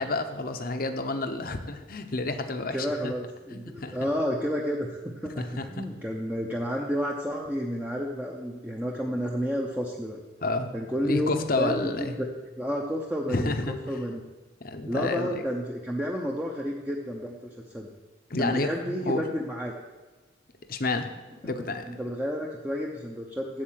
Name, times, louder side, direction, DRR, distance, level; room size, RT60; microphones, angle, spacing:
voice 1, 0.0-3.1 3.5-4.0 5.4-5.8 10.4-10.7 11.0-12.2 13.3-14.0 14.6-15.4 18.3-19.2 20.7-21.1 21.4-21.8, left 2 dB, 50° left, 7 dB, 0.8 m, -30 dB
voice 2, 2.7-10.2 10.7-12.3 12.5-14.2 14.9-17.9 18.4-19.7 21.4-23.6, equal, 10° right, -1 dB, 0.7 m, -31 dB
8.7 x 7.4 x 7.5 m, 1.2 s
head